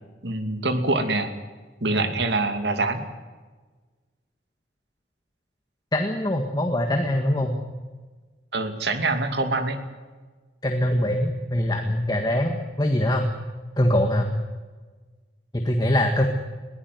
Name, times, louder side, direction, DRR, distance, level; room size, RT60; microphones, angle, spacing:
voice 1, 0.2-1.3 1.8-3.0 8.5-9.8, right 2 dB, 70° right, 7 dB, 2.6 m, -25 dB
voice 2, 5.9-7.6 10.6-13.3 13.8-14.3 15.5-16.3, left 1 dB, 20° left, 4 dB, 1.7 m, -23 dB
22.0 x 16.0 x 9.6 m, 1.4 s
head